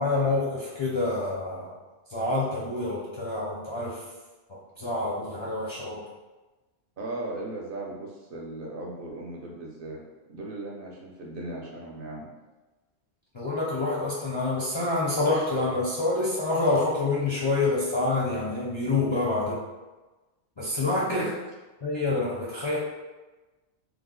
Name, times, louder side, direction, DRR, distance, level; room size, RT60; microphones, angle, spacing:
voice 1, 0.0-1.7 2.1-4.0 4.8-6.0 13.3-19.6 20.6-21.3 21.8-22.8, left 2 dB, 35° left, -7 dB, 0.4 m, -27 dB
voice 2, 7.0-10.0 10.3-12.3 21.0-21.3, right 2 dB, 60° right, -2 dB, 0.7 m, -37 dB
3.1 x 2.1 x 3.7 m, 1.2 s
omnidirectional pair, 1.1 m